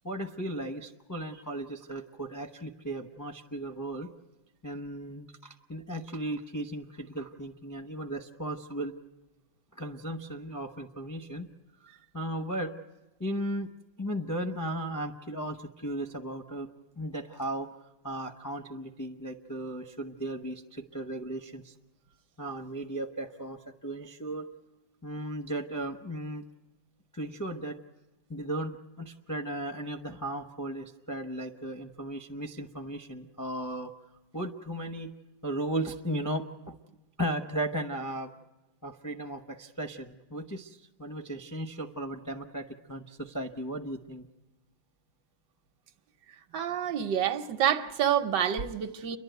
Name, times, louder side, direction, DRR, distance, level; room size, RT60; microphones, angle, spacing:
voice 1, 0.0-4.1 4.6-8.9 9.7-11.5 11.8-12.7 13.2-13.7 14.0-17.7 18.0-21.7 22.4-24.5 25.0-26.4 27.1-27.8 28.3-33.9 34.3-35.1 35.4-36.8 37.2-38.3 38.8-44.3, right 1 dB, 25° left, 0.4 m, -36 dB
voice 2, 46.5-49.2, right 9 dB, 70° right, 1.5 m, -28 dB
29.5 x 11.5 x 9.3 m
omnidirectional pair, 2.1 m